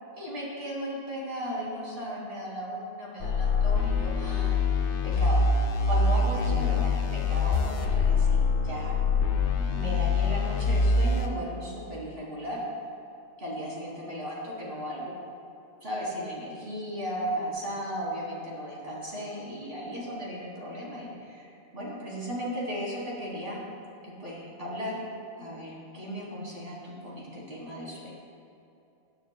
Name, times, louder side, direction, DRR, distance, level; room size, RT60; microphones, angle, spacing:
voice 1, 0.2-4.6 5.0-5.5 5.8-12.6 13.4-15.1 15.8-23.6 24.2-25.0 25.3-28.1, equal, 55° right, -6 dB, 3.1 m, -36 dB
sound 1, 3.2-11.3, left 4 dB, 85° left, 1.1 m, -25 dB
16.0 x 10.5 x 2.3 m, 2.8 s
omnidirectional pair, 1.1 m